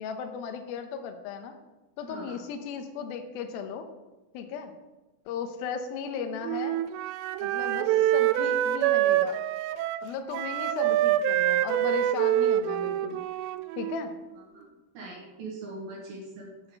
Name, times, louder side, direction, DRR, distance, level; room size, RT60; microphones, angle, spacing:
voice 1, 0.0-1.6 2.0-3.9 4.3-4.7 5.3-6.8 7.4-9.4 10.0-13.2 13.8-14.1, left 6 dB, 80° left, 6 dB, 2.2 m, -36 dB
Wind instrument woodwind instrument, 6.4-14.2, right 12 dB, 85° right, 2.5 m, -26 dB
voice 2, 14.9-16.8, right 2 dB, 60° right, -2 dB, 3.0 m, -41 dB
8.5 x 6.2 x 7.8 m, 1.1 s
omnidirectional pair, 5.4 m